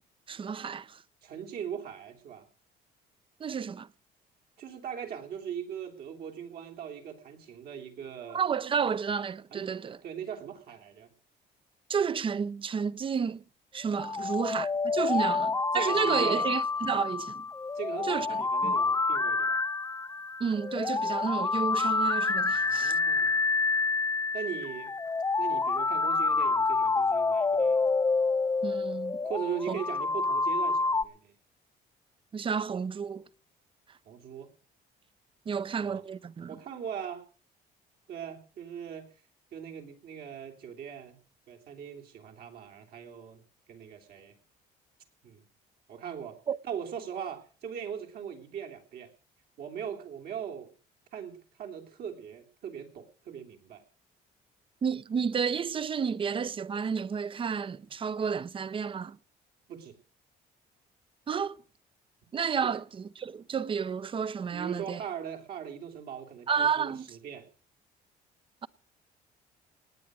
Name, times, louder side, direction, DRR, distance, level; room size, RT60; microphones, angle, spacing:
voice 1, 0.3-1.0 3.4-3.9 8.3-10.0 11.9-13.4 13.7-17.4 18.1-18.3 18.6-18.8 20.4-23.0 28.6-29.2 29.7-29.8 32.3-33.3 35.5-36.6 46.5-46.6 54.8-59.2 61.3-61.6 62.3-65.0 66.5-67.1, right 6 dB, 30° right, 0.7 m, -31 dB
voice 2, 1.2-2.5 4.6-8.4 9.5-11.1 14.1-14.5 15.1-15.3 15.7-16.5 17.7-19.6 22.5-23.5 24.3-25.0 25.4-27.8 29.2-31.3 34.0-34.5 35.5-36.0 36.5-37.2 38.1-39.1 39.5-43.4 43.7-44.4 45.2-45.4 45.9-46.4 46.6-49.1 49.6-50.7 51.1-53.8 59.7-60.0 62.6-62.7 64.5-67.4, right 8 dB, 65° right, 3.3 m, -40 dB
sound 1, 13.9-31.0, left 4 dB, 15° left, 0.7 m, -28 dB
18.5 x 9.2 x 6.3 m
cardioid pair, 110°, 17 cm